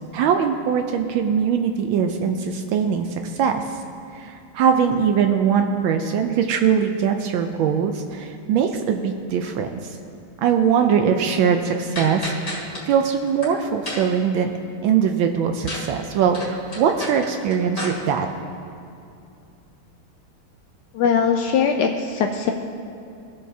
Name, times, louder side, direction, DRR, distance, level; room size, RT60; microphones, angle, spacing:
voice 1, 0.1-3.6 4.1-9.8 10.4-14.5 14.8-18.3, right 7 dB, 75° right, 5 dB, 1.2 m, -21 dB
sound 1, 12.0-12.8 13.2-13.5 13.9-14.2 15.7-15.9 16.1-17.9, left 1 dB, 30° left, 2.2 m, -31 dB
voice 2, 20.9-22.5, left 6 dB, 90° left, 4 dB, 0.9 m, -20 dB
17.5 x 6.6 x 2.7 m, 2.6 s
omnidirectional pair, 2.4 m